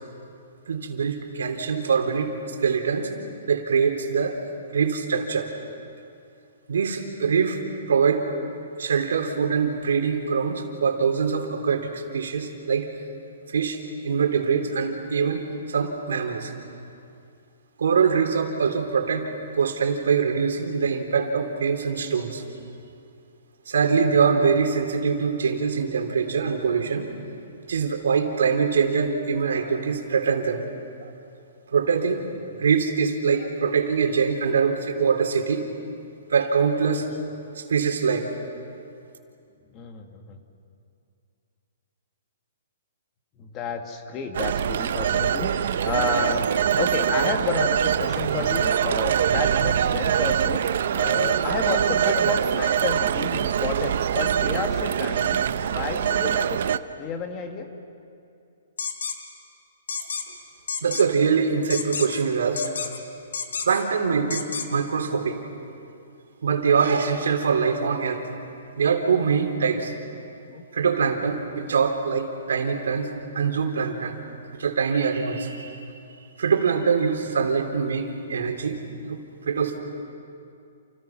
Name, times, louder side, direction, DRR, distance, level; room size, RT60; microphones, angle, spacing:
voice 1, 0.7-3.1 3.5-4.4 4.7-5.5 6.7-7.6 7.9-8.3 8.8-12.9 13.5-16.5 17.8-22.4 23.7-27.1 27.7-30.6 31.0-31.1 31.7-32.2 32.6-35.7 36.3-37.1 37.6-38.3 60.8-62.7 63.7-65.4 66.4-68.3 68.8-69.9 70.7-74.2 74.5-75.9 76.4-78.8 79.1-79.2 79.5-79.8, right 6 dB, 85° right, 4 dB, 3.7 m, -23 dB
voice 2, 39.7-40.4 43.4-46.5 46.8-56.6 57.0-57.7 64.2-64.3 70.5-70.6, left 5 dB, 20° left, 5 dB, 1.5 m, -31 dB
Telephone, 44.3-56.8, right 9 dB, 50° right, 0.7 m, -23 dB
sound 1, 58.8-59.2 59.9-60.2 60.7-61.0 61.7-62.2 62.6-63.0 63.3-63.8 64.3-64.7, left 5 dB, 80° left, 3.2 m, -30 dB
30.0 x 29.0 x 6.1 m, 2.5 s
hypercardioid pair, 175°, 0 cm